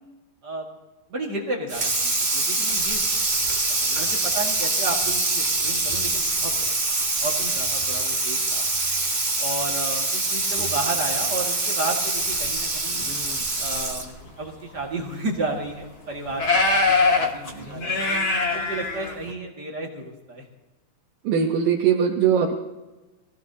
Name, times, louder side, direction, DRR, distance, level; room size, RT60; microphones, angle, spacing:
voice 1, 1.1-3.0 3.3-3.4 3.7-6.7 7.2-8.6 9.4-13.0 13.6-16.6 16.9-18.0 18.5-20.5, right 2 dB, 35° right, -1 dB, 1.8 m, -32 dB
Water tap faucet / Sink (filling or washing), 1.7-14.2, right 2 dB, 90° right, 0.4 m, -24 dB
sound 1, 12.8-13.4 14.2-14.3 14.8-14.9 15.6-15.7 16.3-19.3, left 3 dB, 45° left, 1.3 m, -23 dB
voice 2, 21.2-22.5, right 7 dB, 70° right, 0 dB, 2.7 m, -20 dB
23.5 x 17.0 x 2.8 m, 1.1 s
omnidirectional pair, 4.2 m